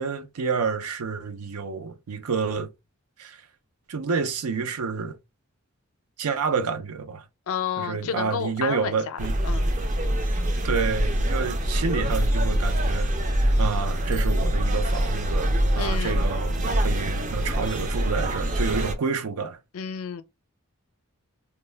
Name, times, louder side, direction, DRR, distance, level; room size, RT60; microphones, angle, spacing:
voice 1, 0.0-2.7 3.2-3.4 3.9-5.2 6.2-7.2 7.8-9.3 10.6-19.6, right 5 dB, 90° right, 0.5 m, -29 dB
voice 2, 7.5-9.2 9.4-9.7 15.8-16.2 19.7-20.2, left 7 dB, 70° left, 0.4 m, -31 dB
sound 1, 9.2-18.9, equal, 35° right, 0.4 m, -24 dB
2.2 x 2.1 x 3.2 m
head